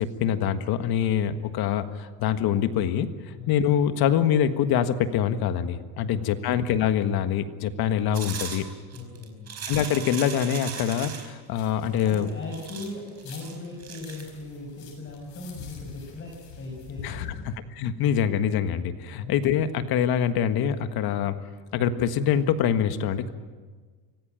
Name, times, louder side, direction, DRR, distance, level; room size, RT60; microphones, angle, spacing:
voice 1, 0.0-3.1 3.5-8.7 9.7-12.3 17.0-21.3 21.7-23.3, left 9 dB, 55° left, 9 dB, 1.6 m, -25 dB
voice 2, 6.0-6.5 8.9-9.6 12.0-17.5 19.2-19.3, left 2 dB, 25° left, 1 dB, 5.0 m, -39 dB
sound 1, 8.1-11.3 12.0-14.2, right 7 dB, 35° right, 4.8 m, -37 dB
sound 2, 11.5-12.9 13.2-17.4, left 8 dB, 85° left, 7.2 m, -44 dB
24.5 x 17.0 x 9.1 m, 1.5 s
cardioid pair, 140°, 46 cm